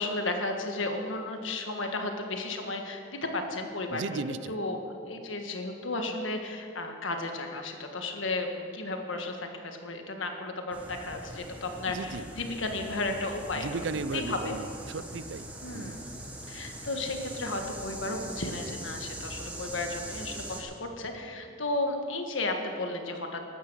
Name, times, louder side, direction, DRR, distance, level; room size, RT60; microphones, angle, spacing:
voice 1, 0.0-13.7 14.1-14.6 15.6-16.0 16.5-23.4, left 2 dB, 80° left, 4 dB, 1.5 m, -34 dB
voice 2, 3.9-4.6 11.9-12.3 13.6-16.0, right 4 dB, 70° right, 14 dB, 0.4 m, -36 dB
sound 1, 10.7-20.6, right 1 dB, 5° right, 1.2 m, -42 dB
14.0 x 9.6 x 6.1 m, 2.3 s
head